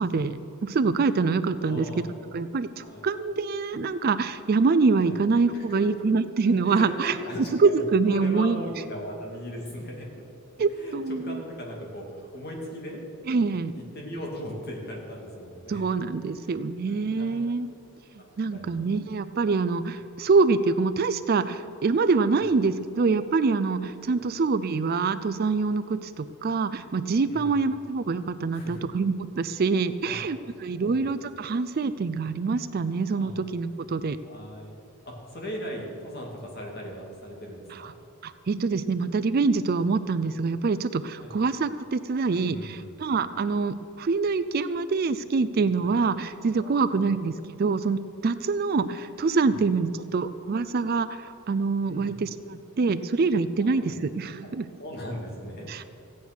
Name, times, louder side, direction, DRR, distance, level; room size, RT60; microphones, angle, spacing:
voice 1, 0.0-1.9 2.3-7.1 7.6-8.6 10.6-11.4 13.3-13.7 15.7-17.7 18.4-34.2 37.7-37.9 38.2-54.7 55.7-55.8, right 4 dB, 45° right, 13 dB, 0.4 m, -25 dB
voice 2, 1.7-2.2 2.8-3.1 5.0-5.2 5.5-6.2 6.6-10.1 10.8-13.0 13.7-15.9 16.3-17.5 18.2-18.9 22.3-22.5 24.1-24.2 27.3-27.7 28.5-28.9 30.0-30.2 30.8-31.2 33.1-33.3 34.2-34.8 35.1-38.0 41.2-41.3 42.3-43.0 43.2-43.3 45.8-45.9 46.6-47.0 51.8-52.1 53.6-53.9 54.4-54.5 54.8-55.9, equal, 45° left, -1 dB, 2.5 m, -39 dB
15.0 x 9.5 x 6.1 m, 2.6 s
head